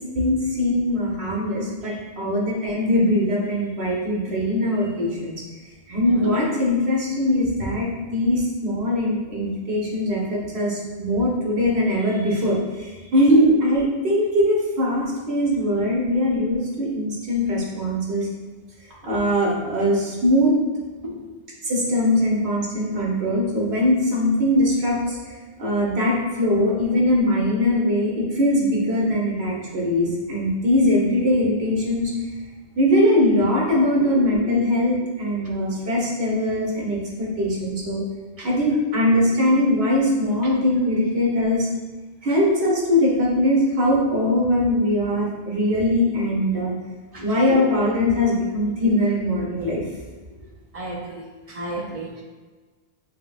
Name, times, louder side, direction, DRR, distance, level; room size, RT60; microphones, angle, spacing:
voice 1, 0.1-5.3 5.9-18.3 19.0-20.6 21.6-25.3 25.6-32.1 32.7-38.0 38.4-41.7 42.2-46.7 47.2-49.8, left 1 dB, 70° right, -5 dB, 1.3 m, -21 dB
voice 2, 6.0-6.3 13.3-13.4 21.0-21.4 35.7-35.8 38.4-38.5 39.1-39.2 47.1-47.3 50.7-52.2, right 1 dB, 45° right, -2 dB, 0.5 m, -34 dB
6.4 x 2.1 x 2.3 m, 1.3 s
omnidirectional pair, 1.1 m